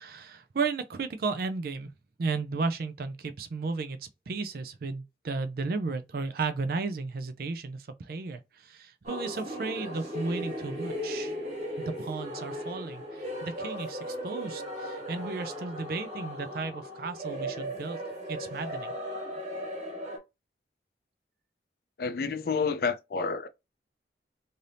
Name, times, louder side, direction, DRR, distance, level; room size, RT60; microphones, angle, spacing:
voice 1, 0.0-1.9 2.2-11.4 11.8-18.0 18.3-18.9, right 4 dB, 55° right, 0.4 m, -34 dB
sound 1, 9.0-20.2, equal, 40° right, 1.0 m, -37 dB
voice 2, 22.0-23.5, left 5 dB, 55° left, 0.4 m, -29 dB
2.7 x 2.6 x 3.3 m
head